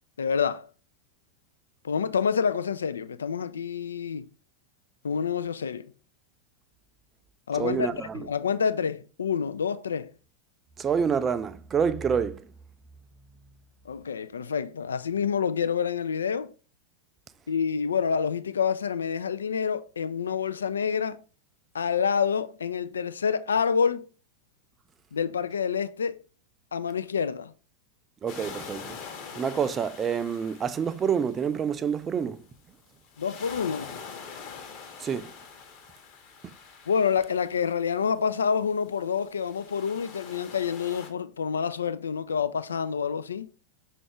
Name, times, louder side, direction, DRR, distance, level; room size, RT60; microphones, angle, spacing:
voice 1, 0.2-0.7 1.8-4.3 5.0-5.9 7.5-10.1 13.9-16.5 17.5-21.2 21.7-24.1 25.1-26.2 26.7-27.5 33.2-33.9 36.9-43.5, left 6 dB, 70° left, 0.3 m, -27 dB
voice 2, 7.5-8.3 10.8-12.5 28.2-29.0 29.4-32.4 35.0-35.3, right 7 dB, 20° right, 0.3 m, -27 dB
sound 1, 28.3-32.0 33.0-38.1 38.9-41.1, left 6 dB, 35° left, 0.9 m, -44 dB
5.8 x 2.4 x 3.4 m
figure-of-eight pair, 90°, 0 cm